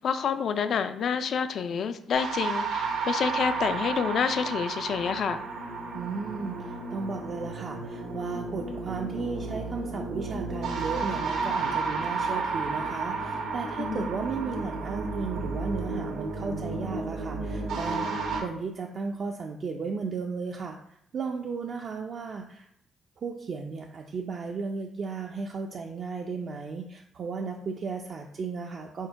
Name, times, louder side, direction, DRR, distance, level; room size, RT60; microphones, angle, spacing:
voice 1, 0.0-5.4 13.8-14.1, left 7 dB, 60° left, 10 dB, 0.3 m, -28 dB
sound 1, 2.1-18.4, right 4 dB, 85° right, 1.1 m, -32 dB
voice 2, 5.9-22.7 23.2-29.1, right 4 dB, 50° right, 1 dB, 0.4 m, -35 dB
4.4 x 2.2 x 4.5 m, 0.70 s
cardioid pair, 90°, 0 cm